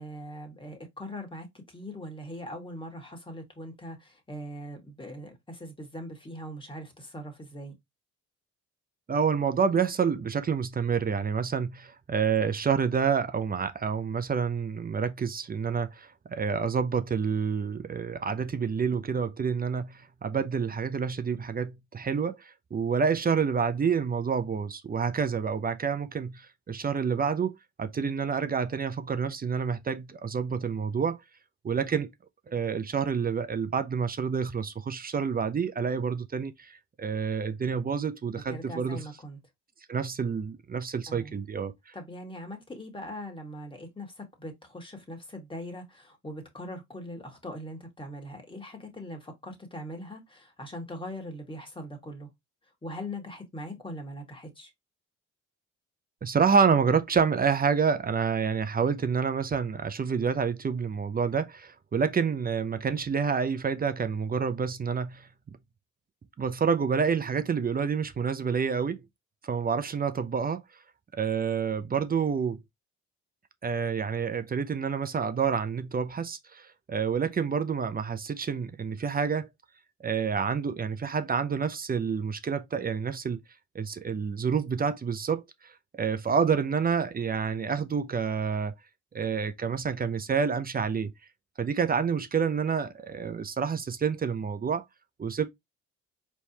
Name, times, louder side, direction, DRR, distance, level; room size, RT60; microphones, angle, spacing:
voice 1, 0.0-7.7 38.5-39.4 41.1-41.4 41.9-52.3 52.8-54.7, equal, 15° left, 1.9 m, -41 dB
voice 2, 9.1-31.2 31.6-32.1 32.5-39.0 39.9-41.9 56.2-65.3 66.4-69.0 69.4-70.6 71.2-72.6 73.6-79.5 80.0-83.4 83.7-88.7 89.1-91.1 91.6-94.8 95.2-95.5, right 6 dB, 30° right, 0.6 m, -28 dB
4.6 x 3.5 x 2.9 m
cardioid pair, 90°, 30 cm